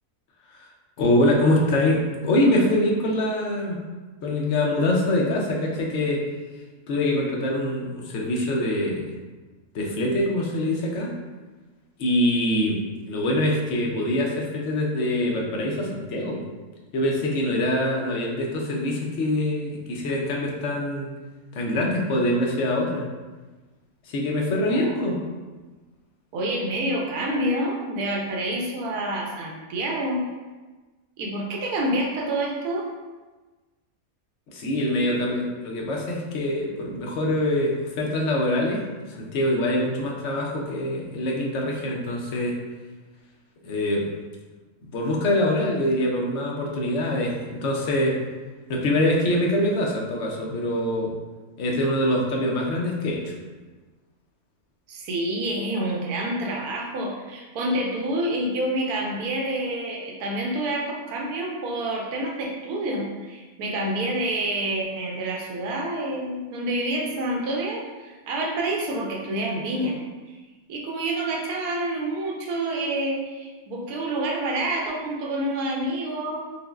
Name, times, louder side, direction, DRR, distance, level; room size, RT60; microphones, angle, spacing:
voice 1, 1.0-3.8 4.2-6.2 6.9-9.1 9.7-11.1 12.0-16.5 16.9-21.1 21.5-23.0 24.1-25.2 34.5-38.8 39.1-42.6 43.6-44.1 44.9-48.1 48.7-51.1 51.6-53.3, left 1 dB, 60° left, -1 dB, 0.9 m, -24 dB
voice 2, 24.7-25.0 26.3-30.2 31.2-32.9 54.9-70.0 70.7-76.4, right 1 dB, 90° right, -1 dB, 1.1 m, -28 dB
5.3 x 2.1 x 2.3 m, 1.3 s
omnidirectional pair, 1.5 m